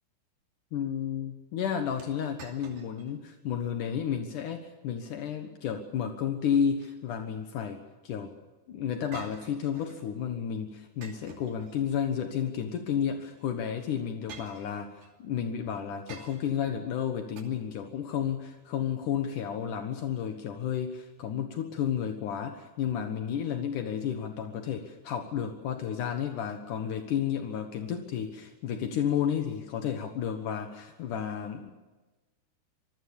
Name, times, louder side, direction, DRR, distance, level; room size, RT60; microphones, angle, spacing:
voice 1, 0.7-8.3 8.7-31.7, left 8 dB, 70° left, 6 dB, 1.9 m, -32 dB
sound 1, 2.0-3.2 3.5-3.6 4.3-4.6 6.5-7.4 9.1-10.1 11.0-12.2 13.3-13.5 14.3-15.1 16.1-16.7 17.4-17.5, right 5 dB, 50° right, 4.0 m, -50 dB
26.5 x 21.5 x 6.9 m, 1.2 s
omnidirectional pair, 5.6 m